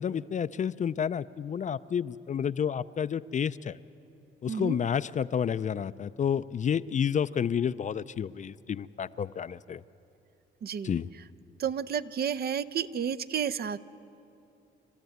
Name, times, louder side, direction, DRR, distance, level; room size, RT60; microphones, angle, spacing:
voice 1, 0.0-3.8 4.4-9.8 10.8-11.1, left 8 dB, 40° left, 15 dB, 0.4 m, -30 dB
voice 2, 4.5-4.8 10.6-11.2 11.6-13.8, right 8 dB, 50° right, 11 dB, 0.7 m, -31 dB
28.0 x 13.5 x 9.4 m, 2.7 s
cardioid pair, 90°, 20 cm